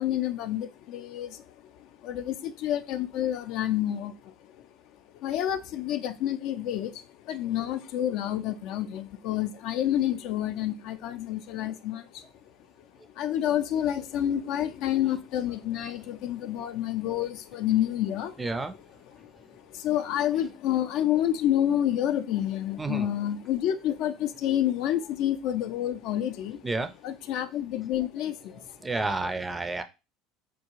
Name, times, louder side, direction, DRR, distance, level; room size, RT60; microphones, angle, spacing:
voice 1, 0.0-4.7 5.2-12.2 13.2-18.4 19.1-26.7 27.0-28.8, left 11 dB, 60° left, 9 dB, 0.3 m, -29 dB
voice 2, 18.4-18.8 22.8-23.1 26.6-26.9 28.8-29.8, right 3 dB, 15° right, 9 dB, 0.4 m, -30 dB
3.6 x 2.4 x 2.9 m, 0.28 s
hypercardioid pair, 75°, 0 cm